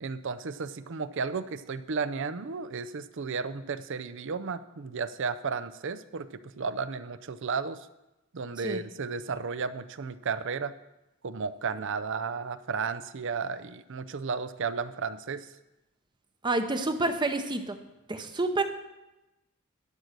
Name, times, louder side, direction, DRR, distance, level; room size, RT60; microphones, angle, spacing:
voice 1, 0.0-7.9 8.3-10.7 11.2-15.5, right 5 dB, 60° right, 14 dB, 0.5 m, -33 dB
voice 2, 16.4-17.8 18.1-18.6, right 2 dB, 20° right, 7 dB, 0.8 m, -28 dB
12.0 x 6.1 x 6.6 m, 0.98 s
head